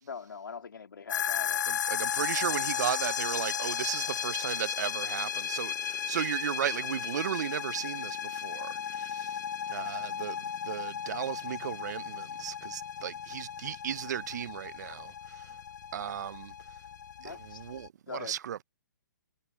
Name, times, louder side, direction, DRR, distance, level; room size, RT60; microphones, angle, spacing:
voice 1, 0.0-1.6 2.3-2.5 17.2-17.7 18.1-18.4, left 6 dB, 80° left, 3.2 m, -43 dB
sound 1, 1.1-17.9, left 8 dB, 60° left, 1.0 m, -35 dB
voice 2, 1.7-9.4 9.7-15.6 15.9-16.5 17.2-18.6, right 10 dB, 55° right, 1.1 m, -35 dB
hypercardioid pair, 140°, 11 cm